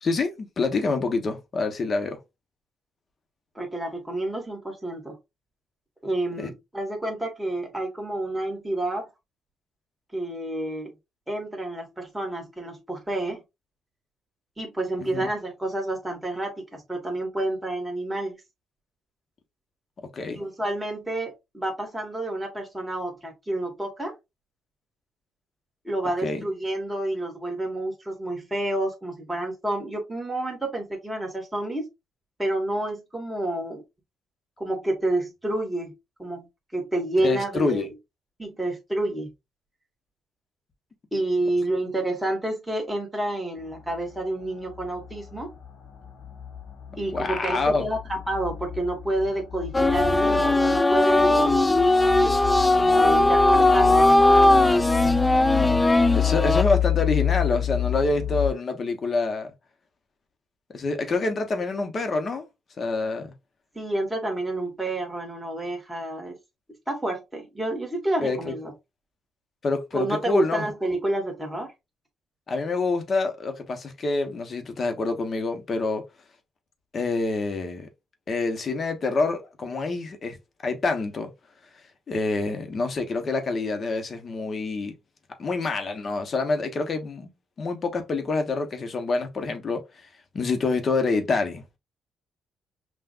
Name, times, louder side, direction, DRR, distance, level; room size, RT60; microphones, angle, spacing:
voice 1, 0.0-2.2 6.4-6.5 15.0-15.3 20.1-20.4 26.2-26.4 37.2-37.9 47.1-47.8 56.1-59.5 60.7-62.5 62.8-63.3 68.2-68.5 69.6-70.7 72.5-76.0 76.9-77.9 78.3-80.4 80.6-81.3 82.1-84.9 85.4-87.3 87.6-90.1 90.3-91.6, left 3 dB, 40° left, 1.1 m, -27 dB
voice 2, 3.5-5.2 6.0-9.1 10.1-10.9 11.3-13.4 14.6-18.3 20.3-24.1 25.8-31.9 32.4-33.8 34.6-35.9 36.2-36.5 36.7-37.9 38.4-39.3 41.1-45.5 47.0-51.6 52.7-54.1 63.7-66.3 66.9-68.7 69.9-71.7, right 1 dB, 5° right, 1.7 m, -29 dB
sound 1, 43.6-58.5, left 11 dB, 80° left, 1.0 m, -30 dB
sound 2, 49.7-56.6, left 2 dB, 10° left, 0.3 m, -19 dB
5.8 x 2.5 x 2.5 m
cardioid pair, 115°, 0 cm